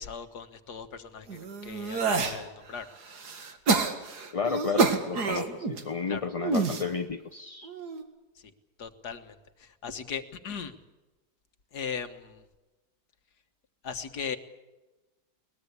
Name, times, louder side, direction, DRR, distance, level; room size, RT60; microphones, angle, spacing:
voice 1, 0.0-2.9 5.3-5.4 6.1-6.3 8.8-10.8 11.7-12.4 13.8-14.4, left 6 dB, 80° left, 9 dB, 2.0 m, -38 dB
sound 1, 1.3-2.4 2.9-5.8 6.4-6.8 7.6-8.0, right 4 dB, 80° right, 2.5 m, -28 dB
voice 2, 4.3-7.7, left 5 dB, 35° left, 8 dB, 0.6 m, -32 dB
22.0 x 20.5 x 8.5 m, 1.1 s
omnidirectional pair, 1.7 m